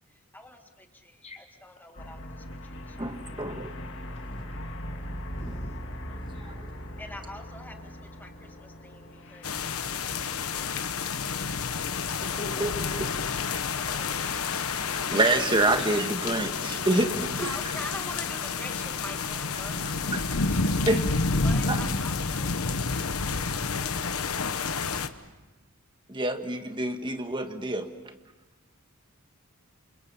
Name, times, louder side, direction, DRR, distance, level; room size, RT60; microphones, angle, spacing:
voice 1, 0.1-3.1 7.0-11.4 17.4-20.7 21.4-24.7 27.0-27.3, left 1 dB, 10° left, 4 dB, 1.8 m, -45 dB
sound 1, 2.0-21.9, left 1 dB, 60° left, 2.3 m, -42 dB
voice 2, 3.0-3.7 5.5-5.6 6.4-6.7 12.6-12.7 15.1-17.5 20.1-20.2 20.9-21.1 21.7-21.8 26.1-27.9, right 2 dB, 20° right, 6 dB, 1.7 m, -27 dB
voice 3, 5.3-5.9 12.2-13.0, left 1 dB, 35° left, 0 dB, 4.5 m, -42 dB
sound 2, 9.4-25.1, left 4 dB, 90° left, 1.2 m, -29 dB
29.5 x 27.0 x 5.7 m, 1.2 s
head